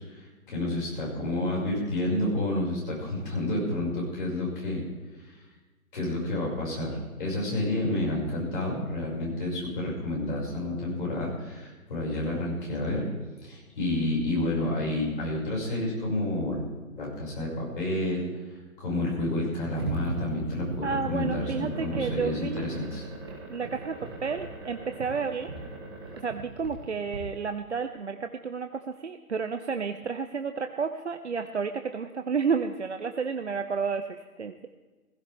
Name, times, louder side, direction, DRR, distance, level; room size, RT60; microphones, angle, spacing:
voice 1, 0.0-4.8 5.2-5.3 5.9-13.1 13.4-16.6 17.0-18.3 18.8-23.0, left 1 dB, 35° left, -4 dB, 6.3 m, -30 dB
sound 1, 19.7-27.2, right 3 dB, 15° right, 1.6 m, -39 dB
voice 2, 20.8-22.7 23.5-25.5 26.1-34.7, right 5 dB, 50° right, 8 dB, 0.7 m, -31 dB
17.0 x 16.5 x 3.6 m, 1.3 s
hypercardioid pair, 170°, 44 cm